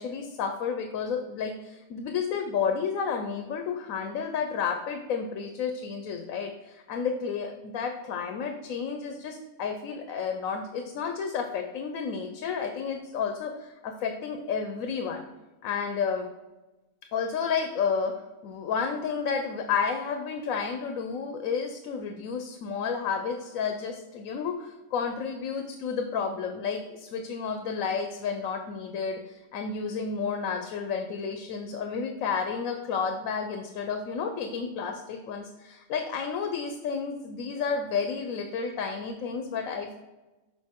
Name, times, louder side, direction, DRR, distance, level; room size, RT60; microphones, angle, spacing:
voice 1, 0.0-15.2 15.6-16.3 17.1-18.1 18.4-40.0, left 6 dB, 85° left, 5 dB, 1.1 m, -31 dB
7.3 x 4.8 x 3.6 m, 1.1 s
omnidirectional pair, 1.4 m